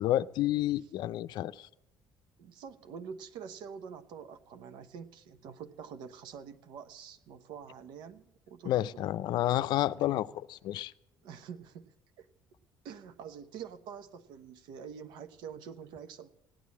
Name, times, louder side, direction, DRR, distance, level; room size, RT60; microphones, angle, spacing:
voice 1, 0.0-1.7 8.7-10.9, left 14 dB, 70° left, 0.5 m, -30 dB
voice 2, 2.4-9.1 11.2-12.3 12.8-16.3, right 7 dB, 75° right, 1.0 m, -46 dB
16.0 x 9.5 x 8.6 m
supercardioid pair, 75°, 8 cm